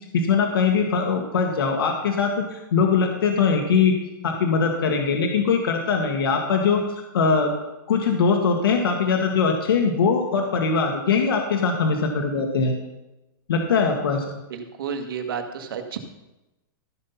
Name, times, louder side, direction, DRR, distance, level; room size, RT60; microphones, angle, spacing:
voice 1, 0.1-3.9 4.2-6.8 7.1-7.5 7.9-12.7 13.5-14.3, left 5 dB, 90° left, 2 dB, 1.7 m, -21 dB
voice 2, 14.5-16.0, right 6 dB, 75° right, 5 dB, 1.8 m, -31 dB
14.5 x 5.7 x 5.8 m, 0.99 s
supercardioid pair, 160°, 12 cm